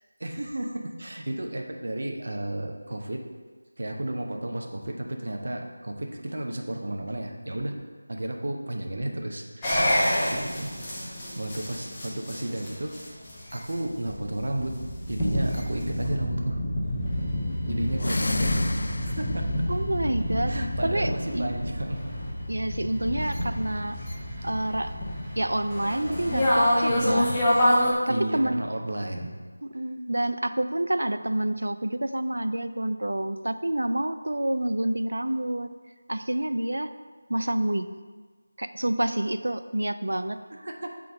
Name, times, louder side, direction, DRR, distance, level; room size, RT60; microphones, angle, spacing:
voice 1, 0.2-3.2 3.8-7.8 8.1-9.8 10.3-10.7 11.4-13.0 13.5-14.8 15.1-16.6 17.6-19.7 20.5-22.0 24.3-24.5 26.9-27.4 28.1-29.3 40.5-40.9, right 1 dB, 60° right, 2 dB, 1.0 m, -32 dB
sound 1, 9.6-27.9, left 1 dB, 15° left, 1.2 m, -28 dB
sound 2, 17.9-19.5, left 2 dB, 55° left, 0.4 m, -30 dB
voice 2, 19.7-20.6 20.8-21.5 22.5-24.0 24.4-24.9 25.4-27.3 28.1-28.6 29.6-35.7 36.1-36.9 37.3-37.9 38.6-40.4, right 1 dB, 80° right, 10 dB, 0.4 m, -28 dB
6.4 x 3.9 x 6.0 m, 1.4 s
figure-of-eight pair, 170°, 0 cm